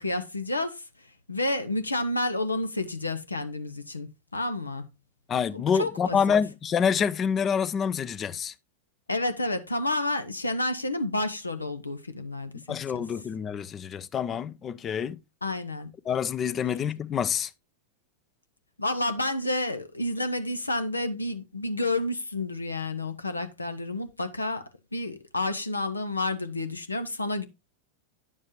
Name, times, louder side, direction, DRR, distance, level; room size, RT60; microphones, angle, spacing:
voice 1, 0.0-4.8 5.5-6.2 9.1-13.0 15.4-15.9 18.8-27.5, left 2 dB, 80° left, 0.8 m, -30 dB
voice 2, 5.3-8.5 12.7-15.2 16.1-17.5, left 7 dB, 25° left, 0.5 m, -27 dB
9.6 x 7.4 x 3.0 m
figure-of-eight pair, 90°, 0 cm